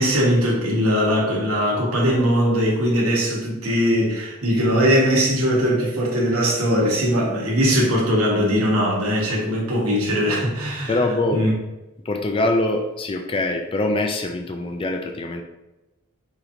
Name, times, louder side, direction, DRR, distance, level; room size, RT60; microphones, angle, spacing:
voice 1, 0.0-11.0 11.3-11.5, equal, 90° right, -3 dB, 1.2 m, -20 dB
voice 2, 10.9-11.4 12.1-15.4, left 2 dB, 25° left, 4 dB, 0.3 m, -23 dB
4.9 x 3.0 x 2.6 m, 1.0 s
head